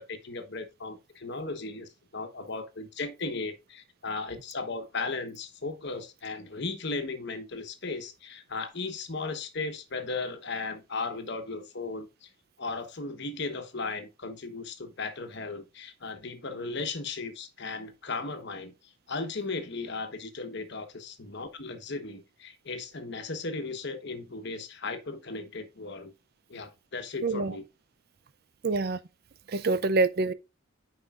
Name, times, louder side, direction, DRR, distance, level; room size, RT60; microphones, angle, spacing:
voice 1, 0.0-12.3 12.6-26.1 26.5-27.7, left 3 dB, 55° left, 1.1 m, -36 dB
voice 2, 28.6-29.0 29.5-30.3, right 3 dB, 45° right, 0.5 m, -26 dB
9.1 x 5.4 x 2.4 m
head